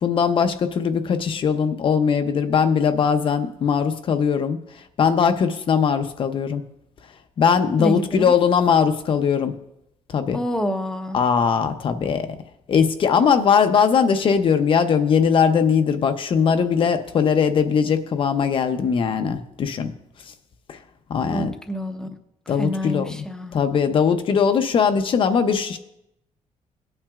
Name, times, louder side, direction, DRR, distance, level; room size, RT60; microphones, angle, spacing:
voice 1, 0.0-4.6 5.0-6.6 7.4-9.5 10.1-10.4 11.1-12.4 12.7-19.9 20.7-20.8 21.1-21.5 22.5-23.2 23.5-25.8, left 6 dB, 45° left, 8 dB, 0.6 m, -20 dB
voice 2, 7.8-8.3 10.3-11.2 21.3-22.1 22.6-23.6, equal, 5° left, 6 dB, 0.7 m, -27 dB
18.5 x 8.7 x 2.4 m, 0.83 s
cardioid pair, 165°, 12 cm